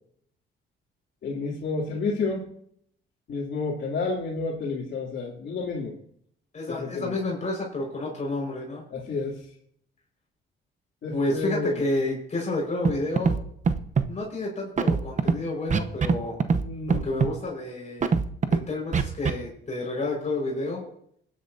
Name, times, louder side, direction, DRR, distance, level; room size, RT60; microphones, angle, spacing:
voice 1, 1.2-2.5 3.3-6.0 6.8-7.1 8.9-9.4 11.0-11.8 16.5-17.0, left 3 dB, 60° left, -6 dB, 2.9 m, -30 dB
voice 2, 6.5-8.8 11.1-13.4 14.1-16.4 16.9-18.1 18.5-20.8, left 2 dB, 35° left, -1 dB, 5.1 m, -30 dB
Scratching (performance technique), 12.8-12.9 13.2-13.4 13.6-14.1 14.8-15.3 15.7-16.1 16.4-16.6 16.9-17.3 18.0-18.6 18.9-19.3, right 5 dB, 40° right, 0.9 m, -21 dB
21.0 x 10.0 x 2.7 m, 0.66 s
cardioid pair, 90°, 20 cm